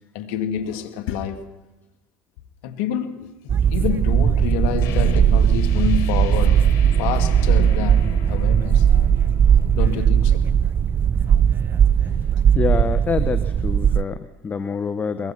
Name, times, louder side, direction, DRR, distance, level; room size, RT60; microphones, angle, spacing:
voice 1, 0.1-1.4 2.6-6.6 7.0-8.9 9.7-10.4, left 9 dB, 75° left, 2.4 m, -28 dB
sound 1, 3.5-14.0, right 8 dB, 35° right, 0.7 m, -18 dB
sound 2, 4.8-10.3, left 8 dB, 60° left, 4.9 m, -37 dB
voice 2, 12.5-15.3, left 5 dB, 30° left, 1.2 m, -26 dB
23.0 x 22.5 x 6.0 m
supercardioid pair, 90°, 6 cm